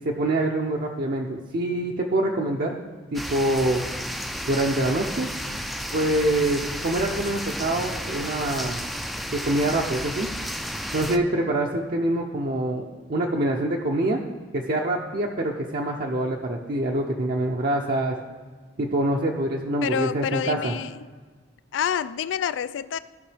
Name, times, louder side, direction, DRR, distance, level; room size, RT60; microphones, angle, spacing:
voice 1, 0.0-2.8 3.1-3.8 4.5-5.3 5.9-8.8 9.3-10.3 10.9-14.2 14.5-18.2 18.8-20.7, right 1 dB, 55° right, -1 dB, 0.6 m, -25 dB
sound 1, 3.1-11.2, equal, ahead, 0.4 m, -32 dB
voice 2, 19.8-21.1 21.7-23.0, left 8 dB, 85° left, 16 dB, 0.3 m, -28 dB
15.5 x 5.4 x 3.4 m, 1.5 s
head